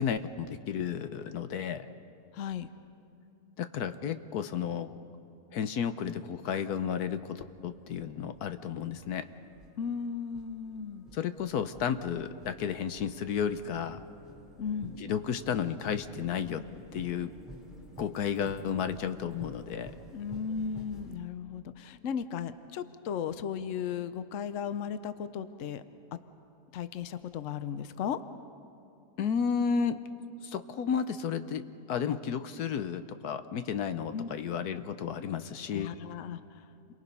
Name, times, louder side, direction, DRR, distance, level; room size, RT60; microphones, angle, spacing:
voice 1, 0.0-1.9 3.6-4.9 5.5-9.3 11.1-14.0 15.0-16.6 16.9-17.3 18.0-19.9 29.2-30.0 30.4-31.6 31.9-35.9, left 7 dB, 75° left, 10 dB, 1.3 m, -32 dB
voice 2, 2.3-2.7 9.8-11.1 14.6-15.0 20.1-25.8 26.7-28.2 34.1-34.3 35.7-36.6, left 7 dB, 60° left, 11 dB, 1.0 m, -36 dB
sound 1, 7.0-21.2, right 1 dB, ahead, 3.5 m, -52 dB
29.5 x 23.5 x 5.5 m, 2.7 s
omnidirectional pair, 1.7 m